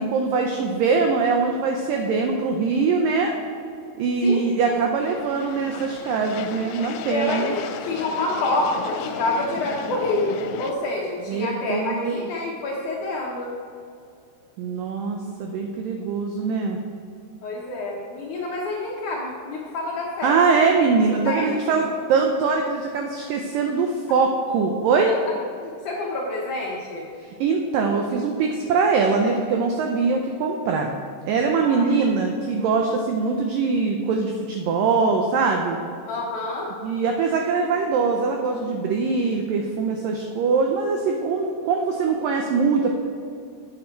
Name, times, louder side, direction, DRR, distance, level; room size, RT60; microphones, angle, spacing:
voice 1, 0.0-3.3 4.0-7.6 11.3-12.3 14.6-16.8 20.2-25.1 27.4-31.0 31.3-35.8 36.8-43.0, right 4 dB, 85° right, 2 dB, 1.9 m, -22 dB
voice 2, 4.2-4.8 7.1-7.5 7.8-13.5 17.4-20.4 21.2-21.6 25.9-27.1 31.6-31.9 36.1-36.7, left 2 dB, 70° left, -3 dB, 1.9 m, -27 dB
sound 1, 5.0-10.7, left 7 dB, 85° left, 2.8 m, -34 dB
8.6 x 8.1 x 4.4 m, 2.4 s
omnidirectional pair, 4.7 m